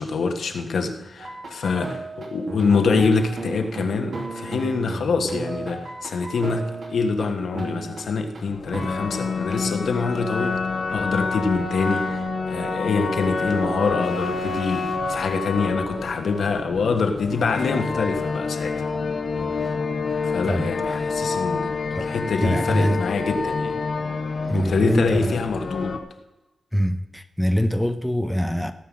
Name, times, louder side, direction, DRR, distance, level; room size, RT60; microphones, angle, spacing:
voice 1, 0.0-18.8 20.2-21.7 22.0-23.8 24.5-26.0, left 4 dB, 75° left, 1.6 m, -25 dB
sound 1, 1.2-7.3 7.5-8.4 8.7-9.6, right 2 dB, 60° right, 2.8 m, -34 dB
sound 2, 8.5-26.0, left 4 dB, 55° left, 1.3 m, -28 dB
voice 2, 21.9-23.0 24.5-25.4 26.7-28.7, equal, 5° left, 0.7 m, -24 dB
17.0 x 5.9 x 7.6 m
wide cardioid pair, 110°, 0 cm